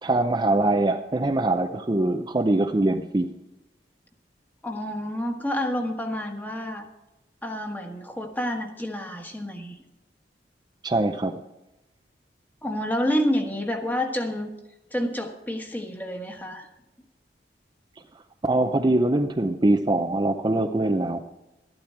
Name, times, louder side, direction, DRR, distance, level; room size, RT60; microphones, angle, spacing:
voice 1, 0.0-3.3 10.8-11.4 18.4-21.2, right 2 dB, 25° right, 5 dB, 0.5 m, -23 dB
voice 2, 4.6-6.8 7.4-9.8 12.6-14.5 14.9-16.7, equal, 10° left, 4 dB, 1.4 m, -29 dB
13.5 x 12.0 x 4.5 m, 0.98 s
head